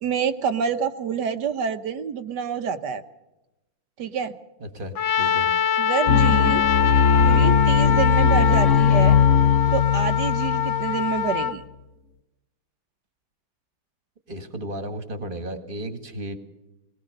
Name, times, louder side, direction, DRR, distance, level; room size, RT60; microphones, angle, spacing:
voice 1, 0.0-3.0 4.0-4.4 5.8-6.6 7.2-9.2 9.7-11.6, right 7 dB, 65° right, 10 dB, 1.5 m, -27 dB
voice 2, 4.6-5.5 14.3-16.4, right 1 dB, 25° right, 9 dB, 1.9 m, -34 dB
Trumpet, 4.9-11.5, left 9 dB, 90° left, 2.0 m, -24 dB
sound 1, 6.1-11.4, left 6 dB, 45° left, 1.2 m, -19 dB
20.5 x 20.0 x 6.6 m, 0.96 s
omnidirectional pair, 2.1 m